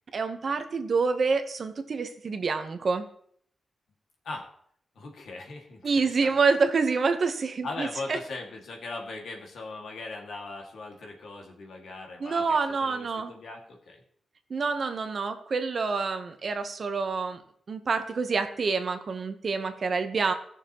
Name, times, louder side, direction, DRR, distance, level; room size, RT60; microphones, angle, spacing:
voice 1, 0.1-3.1 5.8-8.2 12.2-13.3 14.5-17.4 17.7-20.3, right 4 dB, 45° right, 8 dB, 1.0 m, -27 dB
voice 2, 5.0-6.4 7.6-14.0, left 3 dB, 85° left, 1 dB, 2.1 m, -39 dB
17.5 x 6.5 x 3.0 m, 0.65 s
wide cardioid pair, 150°, 0 cm